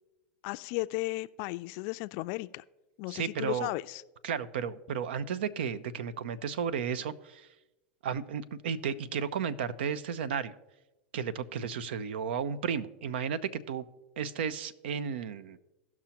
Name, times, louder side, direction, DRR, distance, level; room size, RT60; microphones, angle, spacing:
voice 1, 0.4-2.6 3.0-4.0, left 21 dB, 55° left, 15 dB, 0.3 m, -35 dB
voice 2, 3.1-3.7 4.2-7.5 8.0-10.5 11.1-13.9 14.2-15.6, right 7 dB, 80° right, 17 dB, 0.5 m, -33 dB
16.5 x 6.0 x 2.9 m, 1.0 s
hypercardioid pair, 110°, 6 cm